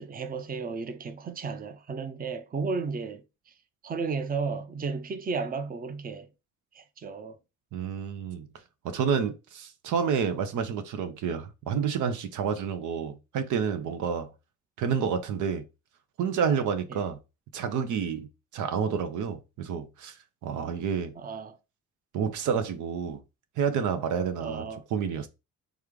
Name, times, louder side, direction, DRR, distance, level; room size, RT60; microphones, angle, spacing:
voice 1, 0.0-3.5 3.8-6.3 6.7-7.4 16.9-17.0 21.2-21.6 24.4-24.8, right 4 dB, 30° right, 0.6 m, -34 dB
voice 2, 7.7-8.5 8.8-14.3 14.8-15.6 16.2-17.2 17.5-18.3 18.5-20.2 20.4-21.2 22.1-23.2 23.6-25.3, right 7 dB, 85° right, 0.8 m, -29 dB
3.5 x 3.2 x 3.6 m
cardioid pair, 90°, 30 cm